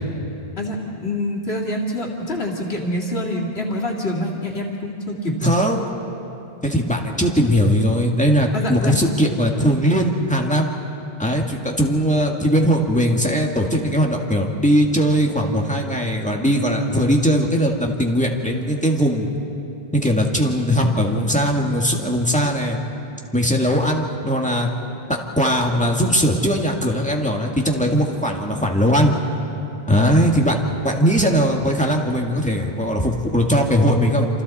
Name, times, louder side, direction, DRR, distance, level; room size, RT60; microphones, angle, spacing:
voice 1, 0.6-5.5 8.5-8.9, left 1 dB, 85° left, -2 dB, 2.6 m, -26 dB
voice 2, 5.4-5.8 6.6-10.7 11.2-19.3 19.9-22.8 23.3-24.7 25.1-29.1 29.9-30.6 30.8-34.4, equal, 5° left, 0 dB, 1.9 m, -19 dB
27.5 x 27.5 x 4.3 m, 2.9 s
omnidirectional pair, 1.0 m